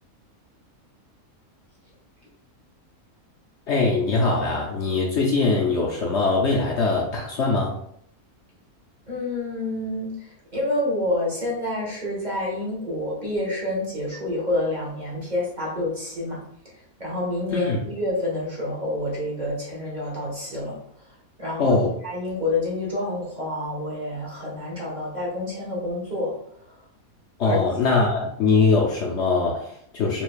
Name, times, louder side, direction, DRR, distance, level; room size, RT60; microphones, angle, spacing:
voice 1, 3.7-7.7 17.5-17.8 21.6-21.9 27.4-30.2, left 3 dB, 60° left, -2 dB, 0.8 m, -22 dB
voice 2, 9.1-16.4 16.7-20.8 21.4-21.8 22.0-26.4 27.4-27.6, left 1 dB, 30° right, -5 dB, 1.3 m, -28 dB
4.6 x 3.3 x 2.3 m, 0.69 s
omnidirectional pair, 1.5 m